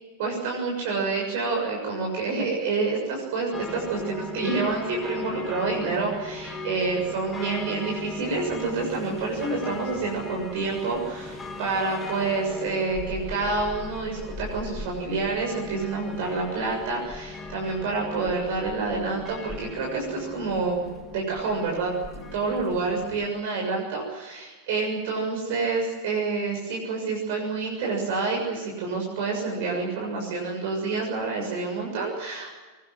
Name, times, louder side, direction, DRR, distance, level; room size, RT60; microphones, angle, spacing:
voice 1, 0.2-20.8 21.1-32.5, right 4 dB, 50° right, -1 dB, 7.1 m, -28 dB
sound 1, 3.5-23.3, left 2 dB, 15° left, 2.9 m, -38 dB
24.5 x 20.0 x 7.7 m, 1.2 s
figure-of-eight pair, 90°, 0 cm